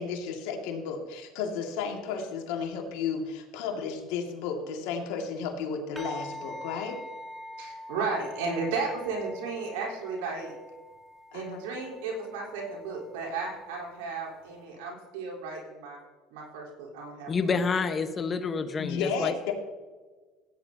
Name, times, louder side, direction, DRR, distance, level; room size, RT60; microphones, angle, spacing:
voice 1, 0.0-7.0 11.3-11.7 18.8-19.5, left 6 dB, 80° left, 2 dB, 2.0 m, -33 dB
sound 1, 6.0-14.6, equal, 15° right, 2.0 m, -45 dB
voice 2, 7.6-10.5 11.3-16.0 16.3-17.6, right 4 dB, 90° right, -2 dB, 3.9 m, -34 dB
voice 3, 17.3-19.3, left 5 dB, 30° left, 9 dB, 1.1 m, -28 dB
15.5 x 9.8 x 2.8 m, 1.4 s
supercardioid pair, 105°, 0 cm